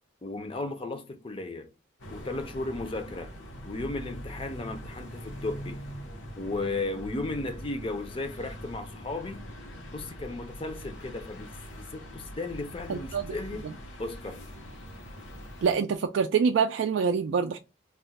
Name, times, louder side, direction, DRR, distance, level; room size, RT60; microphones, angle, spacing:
voice 1, 0.2-1.7 2.1-3.3 3.6-5.8 6.4-9.5 9.9-13.7 14.0-14.4, left 2 dB, 30° left, 0.5 m, -35 dB
sound 1, 2.0-15.7, equal, 85° left, 0.8 m, -43 dB
voice 2, 12.9-13.2 15.6-17.6, right 6 dB, 70° right, 0.3 m, -25 dB
2.3 x 2.1 x 3.8 m
head